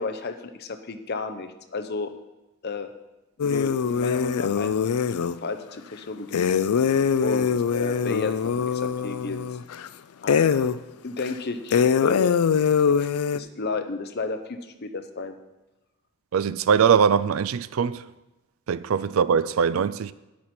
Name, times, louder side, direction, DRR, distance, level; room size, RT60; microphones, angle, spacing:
voice 1, 0.0-2.1 2.6-2.9 3.4-6.4 7.2-9.4 10.2-10.4 10.7-10.8 11.0-12.3 13.0-13.1 13.3-15.4, left 3 dB, 50° left, 0.7 m, -32 dB
sound 1, 3.4-5.4 6.3-9.9 10.3-10.8 11.2-11.3 11.7-13.4, left 6 dB, 85° left, 0.4 m, -23 dB
voice 2, 16.3-18.0 18.7-20.1, right 7 dB, 70° right, 0.4 m, -21 dB
10.5 x 8.7 x 4.3 m
head